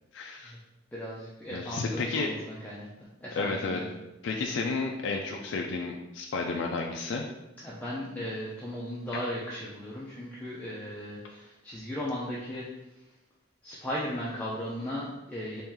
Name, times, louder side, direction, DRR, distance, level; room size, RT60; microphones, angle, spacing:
voice 1, 0.1-0.5 1.5-2.3 3.4-3.8 4.2-7.2, left 3 dB, 70° left, 1 dB, 0.3 m, -31 dB
voice 2, 0.9-2.9 3.2-3.9 7.6-12.7 13.6-15.6, equal, 10° left, -7 dB, 0.4 m, -36 dB
3.1 x 2.9 x 3.6 m, 0.97 s
head